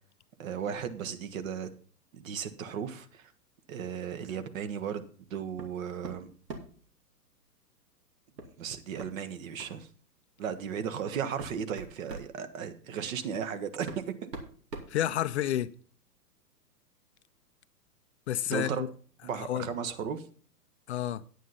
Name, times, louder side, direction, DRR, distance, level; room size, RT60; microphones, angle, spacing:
voice 1, 0.4-1.7 2.1-3.3 3.7-5.0 5.3-6.3 8.6-9.9 10.4-14.0 18.5-18.8 19.2-20.2, right 7 dB, 55° right, 1.6 m, -35 dB
sound 1, 5.6-5.8 6.0-6.8 8.4-8.5 9.0-9.1 9.6-9.8 10.6-10.7 11.2-12.3 13.4-13.5 13.9-15.6, right 2 dB, 85° right, 2.7 m, -43 dB
voice 2, 14.9-15.7 18.3-18.9 19.3-19.7 20.9-21.2, left 11 dB, 45° left, 0.5 m, -30 dB
9.8 x 9.2 x 4.2 m
hypercardioid pair, 120°, 48 cm